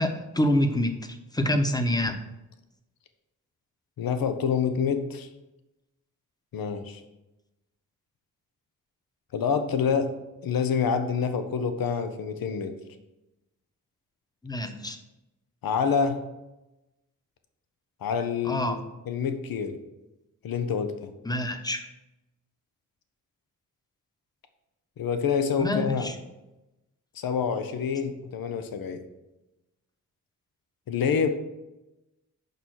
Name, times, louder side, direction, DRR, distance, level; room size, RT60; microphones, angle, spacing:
voice 1, 0.0-2.2 14.4-15.0 18.4-18.8 21.3-21.9 25.6-26.1, left 1 dB, 10° left, 6 dB, 1.0 m, -26 dB
voice 2, 4.0-5.3 6.5-7.0 9.3-10.1 10.4-12.8 15.6-16.2 18.0-18.8 19.1-19.8 20.4-21.1 25.0-26.1 27.1-29.0 30.9-31.3, left 6 dB, 80° left, 8 dB, 0.9 m, -27 dB
6.7 x 5.6 x 6.3 m, 0.98 s
cardioid pair, 85°, 35 cm